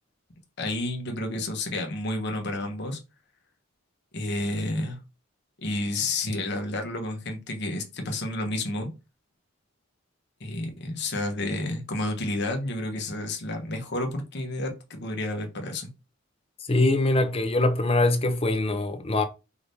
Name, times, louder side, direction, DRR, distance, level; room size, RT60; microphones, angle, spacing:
voice 1, 0.6-3.0 4.1-5.0 5.6-8.9 10.4-15.9, left 2 dB, 55° left, 1.1 m, -30 dB
voice 2, 16.7-19.2, left 2 dB, 30° left, 0.7 m, -23 dB
4.8 x 3.5 x 2.7 m
head